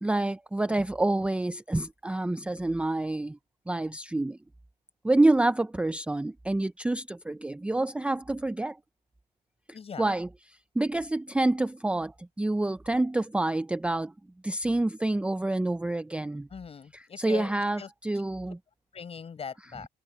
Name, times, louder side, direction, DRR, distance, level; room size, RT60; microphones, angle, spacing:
voice 1, 0.0-3.4 3.7-4.4 5.0-8.8 10.0-10.3 10.8-14.1 14.4-16.5 16.9-18.6, right 2 dB, 5° right, 0.5 m, -27 dB
voice 2, 9.7-10.1 16.5-17.9 18.9-19.9, left 6 dB, 35° left, 5.4 m, -40 dB
cardioid pair, 110°, 17 cm